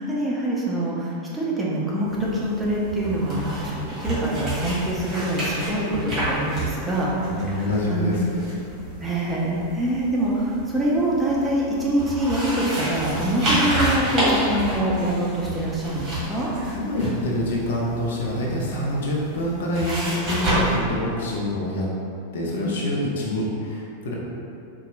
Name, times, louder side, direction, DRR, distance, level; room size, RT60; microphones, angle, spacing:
voice 1, 0.0-7.1 7.5-8.3 9.0-16.5, right 1 dB, 10° right, -6 dB, 0.6 m, -25 dB
sound 1, 2.0-20.8, right 1 dB, 25° right, 1.4 m, -30 dB
voice 2, 7.3-8.2 16.7-21.9 22.3-24.1, left 1 dB, 60° left, -3 dB, 0.5 m, -26 dB
4.1 x 2.2 x 2.5 m, 2.6 s
figure-of-eight pair, 90°, 0 cm